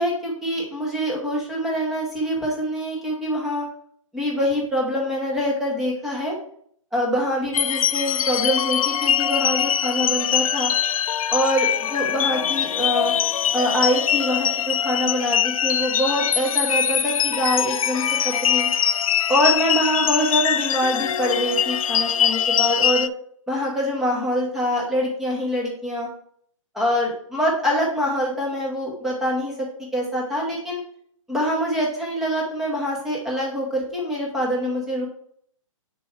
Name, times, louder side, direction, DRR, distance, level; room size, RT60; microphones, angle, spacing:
voice 1, 0.0-3.6 4.1-6.4 6.9-10.7 11.3-13.1 13.5-18.7 19.3-23.1 23.5-26.1 26.7-29.7 29.9-30.8 31.3-35.1, equal, ahead, -3 dB, 1.0 m, -24 dB
sound 1, 7.5-23.1, left 9 dB, 90° left, 0.4 m, -22 dB
6.1 x 4.5 x 4.5 m, 0.63 s
hypercardioid pair, 170°, 17 cm